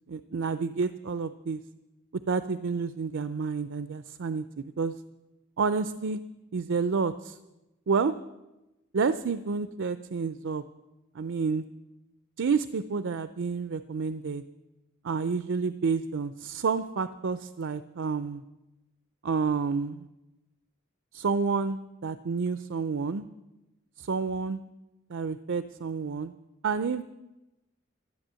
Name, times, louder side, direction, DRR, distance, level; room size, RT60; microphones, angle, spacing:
voice 1, 0.1-1.6 2.3-4.9 5.6-6.2 6.5-7.4 7.9-8.1 8.9-10.6 11.1-11.6 12.4-14.4 15.0-18.4 19.2-20.1 21.1-23.2 24.0-24.6 25.1-26.3 26.6-27.0, right 5 dB, 65° right, 13 dB, 0.5 m, -29 dB
12.5 x 10.5 x 7.5 m, 1.0 s
head